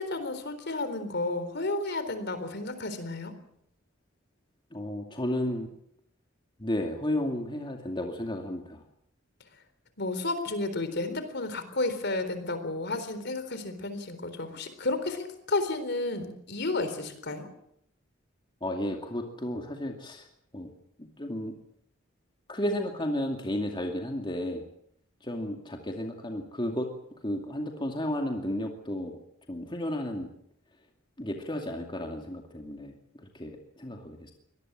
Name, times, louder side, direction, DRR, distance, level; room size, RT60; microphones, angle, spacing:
voice 1, 0.0-3.3 10.0-17.5, left 2 dB, 60° left, 10 dB, 3.9 m, -32 dB
voice 2, 4.7-5.7 6.6-8.8 18.6-20.3 20.5-20.7 21.0-21.6 22.5-24.6 25.2-26.9 27.2-29.1 29.5-30.3 31.2-34.3, left 1 dB, 25° left, 2 dB, 2.5 m, -33 dB
24.0 x 19.0 x 7.5 m, 0.72 s
head